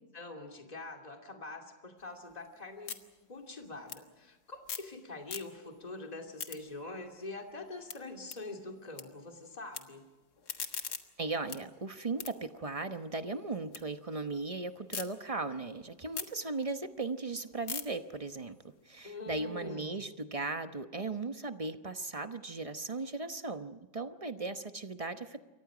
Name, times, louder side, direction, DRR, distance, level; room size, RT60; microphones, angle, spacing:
voice 1, 0.1-3.0 3.3-10.0 19.0-20.0, left 2 dB, 20° left, 2 dB, 2.7 m, -44 dB
sound 1, 2.0-5.0 5.2-5.8 6.2-9.0 9.3-9.8 10.2-13.8 14.2-15.1 15.5-19.7, left 6 dB, 60° left, 2.0 m, -45 dB
voice 2, 11.2-25.4, right 3 dB, 30° right, 8 dB, 0.7 m, -37 dB
28.5 x 24.0 x 5.1 m, 1.2 s
omnidirectional pair, 2.0 m